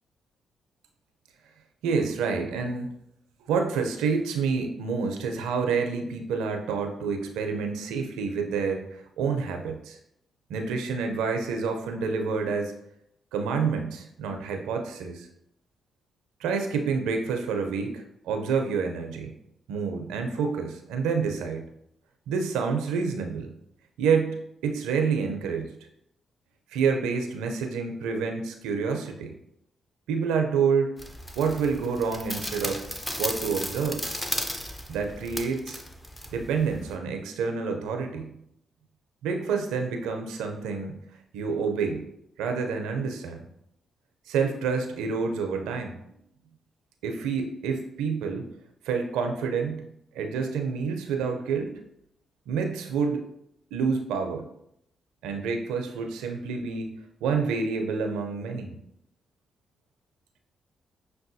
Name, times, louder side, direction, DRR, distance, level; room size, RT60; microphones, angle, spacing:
voice 1, 1.8-2.9 3.4-10.0 10.5-12.7 13.3-15.3 16.4-19.3 19.7-21.6 22.3-23.5 24.0-24.4 24.6-25.7 26.7-29.3 30.1-30.9 31.4-32.8 33.2-34.0 34.9-35.8 36.3-38.3 39.2-41.0 41.3-42.0 42.4-43.4 44.3-45.9 47.0-48.5 48.8-49.8 50.1-51.7 52.5-53.3 53.7-54.4 55.2-56.9 57.2-58.8, right 5 dB, 90° right, 4 dB, 0.4 m, -28 dB
sound 1, 31.0-37.0, equal, 15° left, 0.6 m, -35 dB
6.1 x 2.2 x 2.6 m, 0.77 s
supercardioid pair, 55°, 0 cm